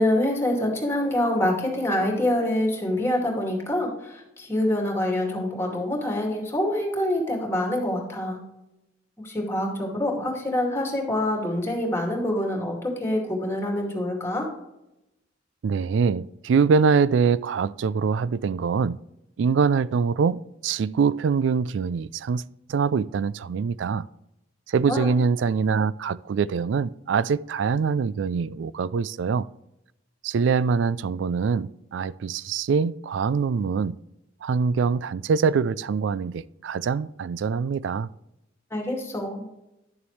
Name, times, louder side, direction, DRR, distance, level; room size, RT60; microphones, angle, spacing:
voice 1, 0.0-8.4 9.2-14.5 24.9-25.1 38.7-39.4, left 1 dB, 15° left, 2.2 m, -26 dB
voice 2, 15.6-19.0 19.4-22.4 22.7-24.0 24.7-29.5 30.2-33.9 34.4-38.1, right 5 dB, 70° right, 0.3 m, -24 dB
11.0 x 6.9 x 3.2 m
head